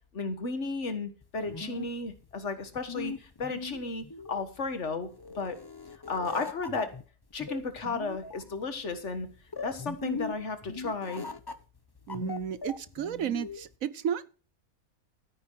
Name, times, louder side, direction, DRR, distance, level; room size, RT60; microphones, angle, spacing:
voice 1, 0.1-5.1 5.4-5.6 6.1-6.9 7.3-9.3 9.6-11.3, left 3 dB, 55° left, 1.8 m, -34 dB
sound 1, 1.2-13.7, left 4 dB, 25° left, 0.5 m, -40 dB
voice 2, 12.1-14.3, right 8 dB, 75° right, 1.2 m, -33 dB
13.0 x 9.6 x 4.7 m
omnidirectional pair, 1.5 m